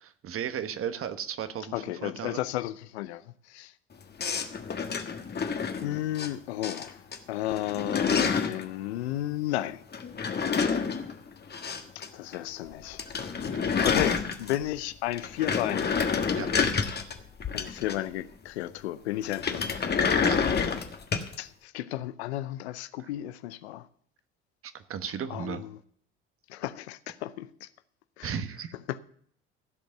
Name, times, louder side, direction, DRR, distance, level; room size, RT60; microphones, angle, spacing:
voice 1, 0.0-2.4 13.5-13.7 16.4-16.5 16.9-17.0 20.2-20.4 23.0-23.1 24.6-25.6 28.2-28.7, right 8 dB, 40° right, 1.2 m, -35 dB
voice 2, 1.7-3.7 5.8-7.0 7.3-9.8 11.9-13.5 13.8-15.9 17.5-19.7 21.4-23.9 25.3-25.7 26.5-27.7 28.2-28.3 28.9-29.0, left 14 dB, 80° left, 0.7 m, -33 dB
sound 1, 4.2-6.3 6.6-7.2 7.4-8.6 9.9-12.1 12.3-12.4 12.7-12.8 13.0-14.7 15.1-18.2 19.3-21.3, left 6 dB, 30° left, 1.4 m, -28 dB
16.0 x 5.3 x 7.7 m
hypercardioid pair, 70°, 32 cm